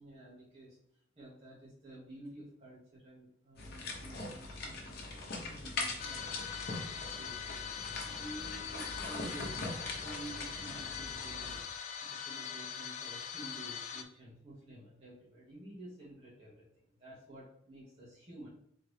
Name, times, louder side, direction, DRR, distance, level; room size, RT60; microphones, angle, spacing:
voice 1, 0.0-5.0 5.4-6.3 7.1-7.4 7.8-11.5 12.0-18.5, right 1 dB, 35° right, -10 dB, 1.6 m, -51 dB
sound 1, 3.6-11.6, left 2 dB, 55° left, 0.9 m, -42 dB
sound 2, 6.0-14.0, left 7 dB, 35° left, 0.3 m, -42 dB
3.8 x 3.5 x 3.3 m, 0.71 s
head